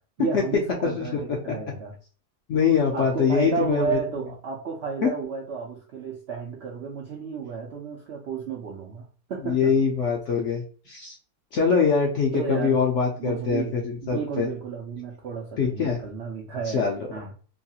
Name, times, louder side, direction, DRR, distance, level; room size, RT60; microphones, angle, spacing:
voice 1, 0.2-1.9 2.9-9.8 12.3-12.8 13.2-17.3, right 6 dB, 85° right, 0 dB, 0.5 m, -32 dB
voice 2, 0.8-1.5 2.5-4.0 5.0-5.1 9.4-11.1 11.5-14.5 15.6-16.0 16.7-17.0, left 6 dB, 70° left, 0 dB, 0.7 m, -23 dB
3.0 x 2.3 x 2.7 m, 0.40 s
omnidirectional pair, 1.8 m